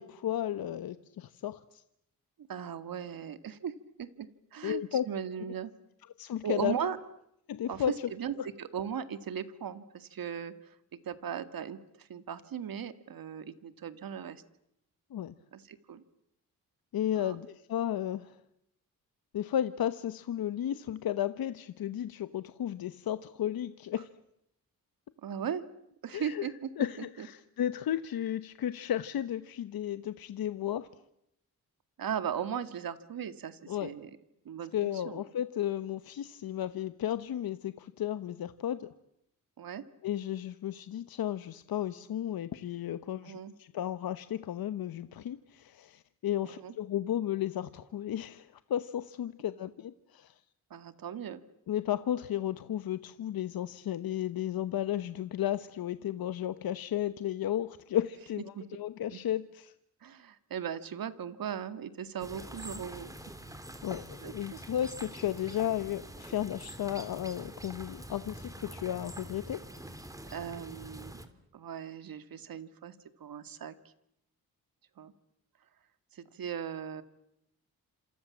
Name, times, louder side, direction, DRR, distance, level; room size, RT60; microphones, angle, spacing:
voice 1, 0.0-1.8 4.6-5.1 6.2-6.8 7.5-8.1 8.4-8.5 15.1-15.3 16.9-18.3 19.3-24.1 26.1-26.5 26.8-30.9 33.7-33.9 34.7-38.9 40.0-50.3 51.7-59.7 63.8-69.6, left 11 dB, 75° left, 12 dB, 1.1 m, -34 dB
voice 2, 2.5-3.7 4.0-4.8 5.1-5.7 6.4-7.0 7.7-7.8 8.1-10.5 11.0-14.4 15.5-16.0 17.2-17.4 25.2-25.6 26.0-26.9 27.2-27.3 32.0-34.1 34.5-35.2 39.6-39.8 43.2-43.5 46.4-46.7 50.7-51.4 58.5-58.7 59.1-59.2 60.0-63.1 64.2-64.6 70.3-71.2 71.5-73.7 75.0-75.1 76.1-77.0, right 8 dB, 70° right, 11 dB, 2.1 m, -38 dB
sound 1, 62.2-71.3, right 1 dB, 10° right, 3.4 m, -45 dB
29.0 x 27.5 x 7.3 m, 0.78 s
cardioid pair, 75°, 36 cm